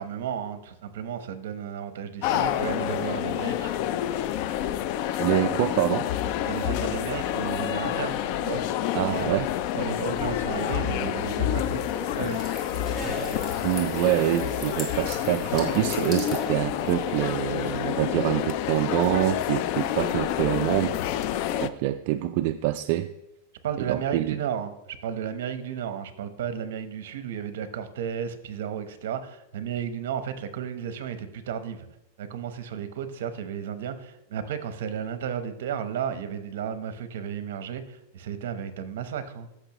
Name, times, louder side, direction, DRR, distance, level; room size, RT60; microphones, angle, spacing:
voice 1, 0.0-3.7 6.5-8.2 8.4-9.3 9.7-11.9 12.2-12.4 23.6-31.8 32.2-39.5, right 8 dB, 70° right, 11 dB, 0.9 m, -33 dB
sound 1, 2.2-21.7, left 11 dB, 45° left, 0.4 m, -28 dB
voice 2, 5.2-6.1 8.9-9.5 13.6-21.0 21.6-23.1 23.8-24.4, right 14 dB, 50° right, 7 dB, 0.3 m, -26 dB
sound 2, 11.7-17.3, left 1 dB, 15° left, 1.9 m, -38 dB
14.0 x 6.1 x 3.0 m, 0.90 s
supercardioid pair, 155°, 0 cm